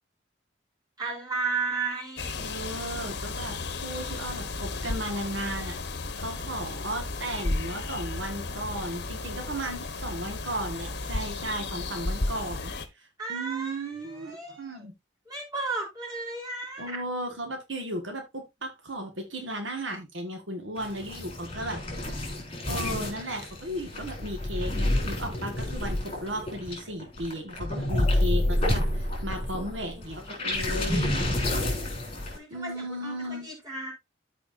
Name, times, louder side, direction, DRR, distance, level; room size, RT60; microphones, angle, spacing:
voice 1, 1.0-2.5 13.2-14.9 15.3-17.0 29.8-30.3 32.3-33.9, right 3 dB, 20° right, 4.1 m, -34 dB
sound 1, 2.2-12.9, left 3 dB, 60° left, 1.1 m, -34 dB
voice 2, 2.4-3.6 3.8-5.8 6.2-14.9 16.8-22.1 22.7-31.2 32.5-33.5, right 1 dB, 75° right, 1.9 m, -35 dB
sound 2, 20.8-32.4, left 1 dB, 30° left, 3.7 m, -29 dB
14.0 x 4.9 x 2.7 m
head